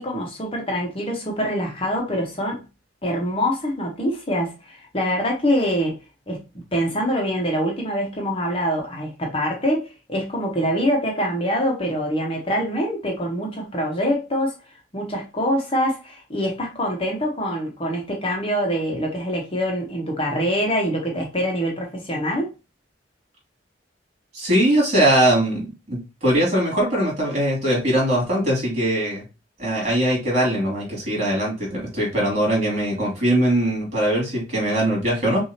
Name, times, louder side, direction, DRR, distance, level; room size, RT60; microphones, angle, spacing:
voice 1, 0.0-2.6 3.0-6.0 6.3-6.4 6.7-14.6 14.9-22.5, equal, 30° left, 1.1 m, -24 dB
voice 2, 24.3-29.2 29.6-35.5, right 1 dB, 40° right, 2.9 m, -21 dB
6.1 x 2.7 x 2.8 m
head